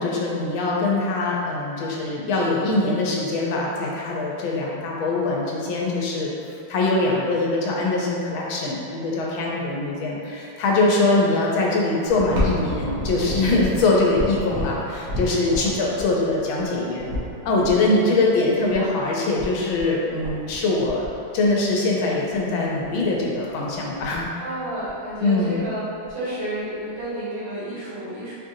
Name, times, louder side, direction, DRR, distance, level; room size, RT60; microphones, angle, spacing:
voice 1, 0.0-6.3 6.7-17.1 17.4-21.1 21.3-24.3 25.2-25.6, left 2 dB, 85° left, -3 dB, 1.4 m, -22 dB
sound 1, 12.1-17.7 18.7-18.8 19.0-19.1 19.4-19.9 20.2-20.6 20.8-21.7 22.3-22.4 22.8-23.1 23.5-23.6 23.7-24.3 24.8-25.6 26.0-26.1 27.0-27.1, equal, 55° right, 0.9 m, -30 dB
voice 2, 17.5-17.9 24.4-25.8 26.1-28.3, right 1 dB, 85° right, -13 dB, 2.5 m, -31 dB
4.6 x 2.5 x 2.7 m, 2.6 s
omnidirectional pair, 2.1 m